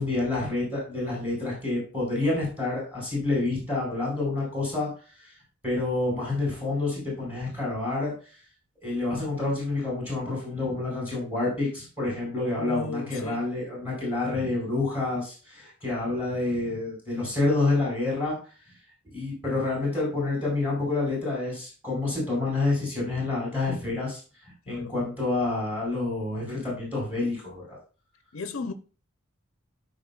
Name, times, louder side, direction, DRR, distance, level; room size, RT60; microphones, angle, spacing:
voice 1, 0.0-4.9 5.2-5.3 5.6-8.1 8.8-18.4 19.1-24.2 24.7-27.8, left 2 dB, 10° right, 4.8 m, -28 dB
voice 2, 12.6-13.4 24.7-24.9 28.3-28.7, left 3 dB, 70° left, 0.6 m, -35 dB
13.5 x 5.2 x 2.3 m
head